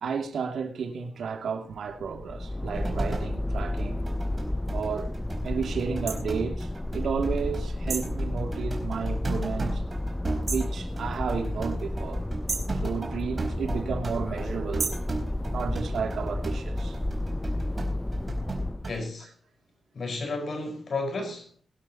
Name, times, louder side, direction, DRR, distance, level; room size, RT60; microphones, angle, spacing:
voice 1, 0.0-4.1 4.7-5.1 5.4-9.8 10.4-12.3 12.8-14.9 15.5-17.0, right 6 dB, 75° right, 2.8 m, -32 dB
sound 1, 1.7-19.0, left 1 dB, 10° left, 0.7 m, -32 dB
sound 2, 2.7-3.4 3.8-18.9, right 2 dB, 35° right, 4.2 m, -37 dB
sound 3, 6.1-6.2 7.9-8.2 10.5-10.8 12.5-12.8 14.8-15.1, right 5 dB, 55° right, 3.3 m, -32 dB
voice 2, 18.9-19.3 20.0-21.6, left 3 dB, 55° left, 5.1 m, -32 dB
22.0 x 12.0 x 3.0 m
wide cardioid pair, 110°, 0 cm